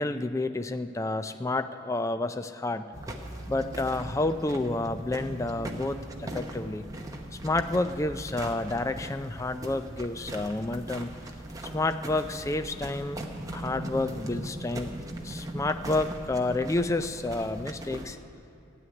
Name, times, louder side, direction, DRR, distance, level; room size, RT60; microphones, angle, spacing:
voice 1, 0.0-2.9 3.5-6.9 7.3-11.1 11.6-13.2 13.5-14.9 15.2-18.2, left 2 dB, 15° left, 10 dB, 0.3 m, -30 dB
sound 1, 2.8-8.3, right 2 dB, 60° right, 0.7 m, -51 dB
sound 2, 2.9-18.1, right 1 dB, 15° right, 0.9 m, -39 dB
13.0 x 7.9 x 9.6 m, 2.8 s
head